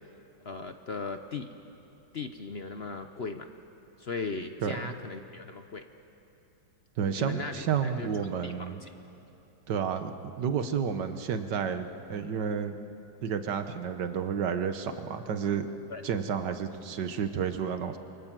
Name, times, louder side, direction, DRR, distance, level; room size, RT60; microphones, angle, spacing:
voice 1, 0.4-1.5 2.1-3.5 4.0-5.9 7.2-8.9 15.9-16.0, left 4 dB, 55° left, 7 dB, 0.7 m, -38 dB
voice 2, 4.6-4.9 7.0-8.8 9.7-12.8 13.2-15.7 16.0-18.0, right 7 dB, 60° right, 9 dB, 1.7 m, -31 dB
28.5 x 23.5 x 7.6 m, 3.0 s
omnidirectional pair, 2.2 m